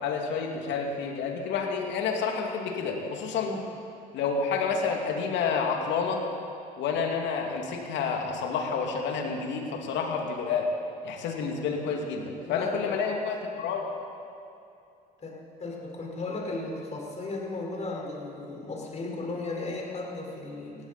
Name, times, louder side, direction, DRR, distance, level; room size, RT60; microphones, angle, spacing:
voice 1, 0.0-3.5 4.1-6.2 6.8-10.7 11.0-13.9, left 5 dB, 65° left, 2 dB, 2.5 m, -29 dB
voice 2, 12.5-12.9 15.2-20.8, left 2 dB, 35° left, -1 dB, 4.9 m, -35 dB
19.5 x 16.0 x 4.3 m, 2.6 s
hypercardioid pair, 65°, 20 cm